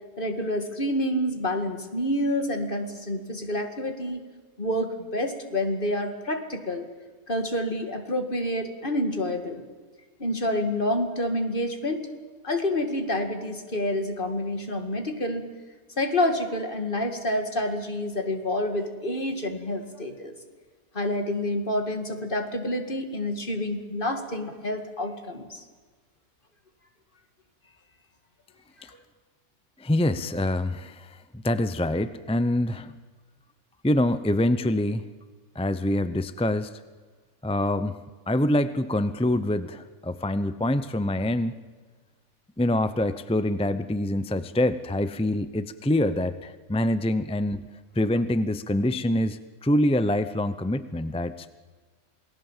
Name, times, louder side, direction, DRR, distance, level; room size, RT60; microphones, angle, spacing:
voice 1, 0.2-4.2 4.6-6.9 7.3-9.6 10.2-12.1 12.4-15.5 16.0-20.3 20.9-25.6 28.9-29.0, left 1 dB, 35° left, 6 dB, 2.3 m, -28 dB
voice 2, 29.8-33.0 33.8-35.1 35.5-36.7 37.4-38.0 38.3-41.6 42.6-47.6 47.9-51.5, left 1 dB, 10° left, 12 dB, 0.4 m, -25 dB
28.0 x 19.0 x 7.4 m, 1.4 s
omnidirectional pair, 1.5 m